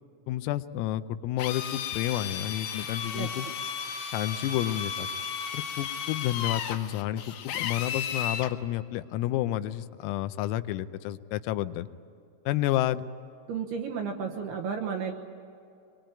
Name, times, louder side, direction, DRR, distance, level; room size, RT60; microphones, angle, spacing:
voice 1, 0.3-3.5 4.1-5.1 5.5-11.9 12.5-13.1, left 13 dB, 90° left, 11 dB, 3.5 m, -30 dB
Drill, 1.4-8.5, left 7 dB, 70° left, 3.2 m, -34 dB
voice 2, 13.5-15.1, right 6 dB, 70° right, 1 dB, 2.6 m, -32 dB
24.5 x 22.0 x 9.0 m, 2.6 s
omnidirectional pair, 6.0 m